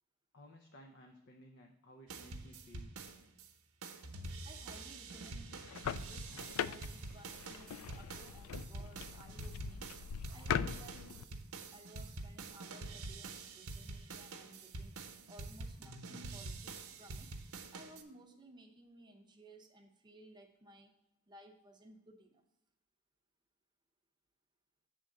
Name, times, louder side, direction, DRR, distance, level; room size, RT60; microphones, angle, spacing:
voice 1, 0.3-2.9, equal, 55° left, 3 dB, 0.7 m, -57 dB
sound 1, 2.1-3.5 3.8-18.0, right 3 dB, 75° right, 0.8 m, -47 dB
voice 2, 4.4-9.9 10.3-11.4 11.7-15.0 15.3-17.3 17.7-20.9 21.3-22.4, right 1 dB, 20° right, 3 dB, 0.7 m, -58 dB
sound 2, 5.5-11.2, left 7 dB, 90° left, 0.3 m, -41 dB
7.5 x 3.7 x 6.3 m, 0.87 s
head